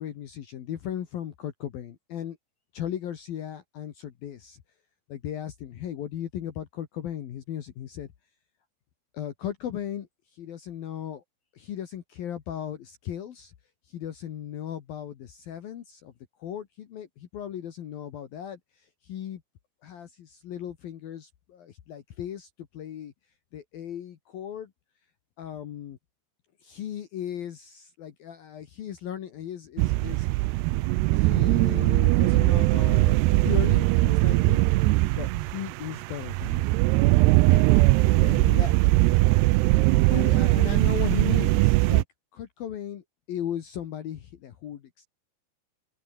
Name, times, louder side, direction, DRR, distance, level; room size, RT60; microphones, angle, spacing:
voice 1, 0.0-2.4 2.7-4.6 5.1-8.1 9.1-11.2 11.5-13.5 13.8-16.1 16.4-19.4 19.8-23.1 23.5-24.7 25.4-26.0 26.6-30.3 31.1-34.6 35.2-36.7 37.5-37.7 38.0-38.7 40.1-42.0 42.3-45.1, left 10 dB, 60° left, 3.0 m, -36 dB
sound 1, 29.8-42.0, right 20 dB, 90° right, 2.3 m, -21 dB
omnidirectional pair, 5.6 m